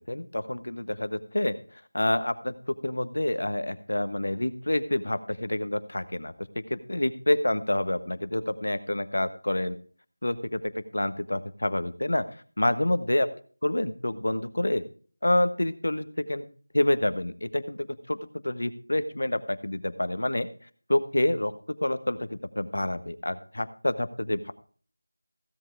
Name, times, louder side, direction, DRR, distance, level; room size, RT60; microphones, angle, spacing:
voice 1, 0.1-1.6 1.9-9.8 10.2-13.3 13.6-14.8 15.2-16.4 16.7-18.2 18.4-20.5 20.9-21.5 21.8-24.5, left 1 dB, 75° left, 12 dB, 1.3 m, -28 dB
16.0 x 7.8 x 4.7 m, 0.42 s
figure-of-eight pair, 175°, 0 cm